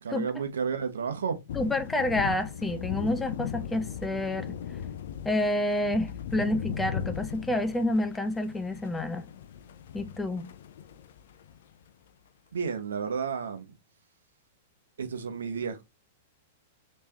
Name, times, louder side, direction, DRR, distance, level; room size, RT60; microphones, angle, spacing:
voice 1, 0.0-1.4 12.5-13.7 15.0-15.8, right 6 dB, 85° right, 0.8 m, -32 dB
sound 1, 1.5-11.6, left 9 dB, 70° left, 0.5 m, -38 dB
voice 2, 1.5-4.5 5.2-9.3 9.9-10.5, left 1 dB, 10° left, 0.5 m, -29 dB
3.5 x 3.1 x 2.9 m
hypercardioid pair, 125°, 0 cm